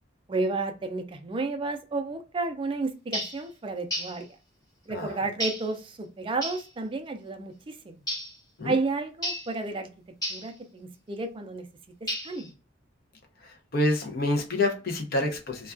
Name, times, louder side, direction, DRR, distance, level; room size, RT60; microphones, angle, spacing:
voice 1, 0.3-4.3 4.9-8.0 8.6-9.9 10.3-11.7 12.2-12.5, right 3 dB, 25° right, 0.3 m, -31 dB
sound 1, 3.1-3.4 3.9-4.2 5.4-5.7 6.4-6.7 8.1-8.4 9.2-9.5 10.2-10.5 12.1-12.5, equal, 20° left, 0.9 m, -32 dB
voice 2, 13.4-15.7, left 1 dB, 50° left, 0.6 m, -27 dB
2.3 x 2.2 x 2.4 m
head